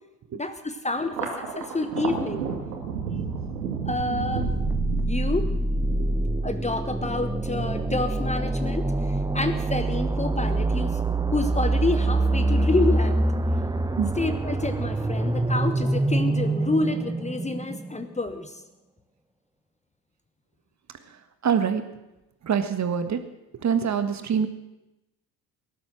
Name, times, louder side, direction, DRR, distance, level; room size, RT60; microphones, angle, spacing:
voice 1, 0.3-2.4 3.8-4.5 5.1-5.5 6.4-11.0 11.3-13.3 14.2-18.5, left 2 dB, 15° left, 9 dB, 1.3 m, -28 dB
Thunder, 1.0-13.7 14.1-14.9 15.2-16.1, right 5 dB, 80° right, 2.3 m, -35 dB
sound 1, 4.4-18.2, right 2 dB, 10° right, 0.9 m, -25 dB
voice 2, 6.0-6.5 13.9-14.1 21.1-21.2 21.4-21.9 22.4-23.2 23.6-24.5, right 7 dB, 35° right, 9 dB, 1.6 m, -25 dB
18.0 x 11.5 x 6.2 m, 0.99 s
hypercardioid pair, 60°, 47 cm